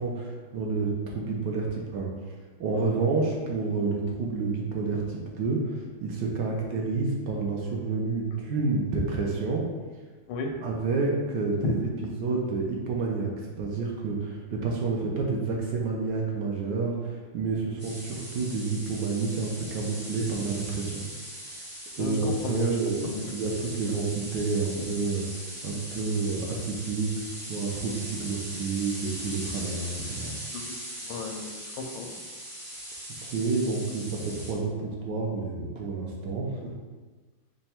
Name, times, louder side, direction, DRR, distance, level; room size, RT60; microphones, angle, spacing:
voice 1, 0.0-2.1 2.6-9.6 10.6-13.3 13.6-21.0 22.0-30.3 33.2-36.7, right 4 dB, 70° right, -1 dB, 1.2 m, -29 dB
voice 2, 10.3-10.6 11.6-11.7 22.0-22.8 23.0-23.3 30.5-30.8 31.0-32.1, left 3 dB, 90° left, 3 dB, 1.5 m, -34 dB
sound 1, 17.8-34.5, equal, 10° right, 0.6 m, -40 dB
5.5 x 2.2 x 4.3 m, 1.4 s
omnidirectional pair, 2.2 m